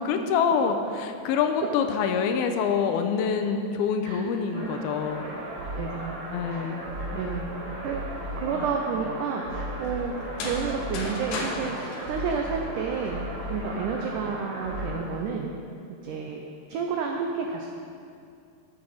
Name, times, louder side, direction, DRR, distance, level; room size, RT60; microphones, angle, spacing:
voice 1, 0.0-5.4 6.3-6.8 8.5-8.7, left 6 dB, 80° left, 6 dB, 2.4 m, -26 dB
sound 1, 4.5-15.0, equal, 60° right, 4.2 m, -35 dB
voice 2, 5.8-6.2 6.5-6.7 7.1-7.5 7.8-8.0 8.4-15.5 16.0-16.4 16.7-17.7, right 5 dB, 90° right, 2 dB, 1.8 m, -30 dB
sound 2, 10.2-13.1, left 2 dB, 65° left, 2.4 m, -36 dB
13.5 x 7.8 x 4.2 m, 2.5 s
omnidirectional pair, 4.5 m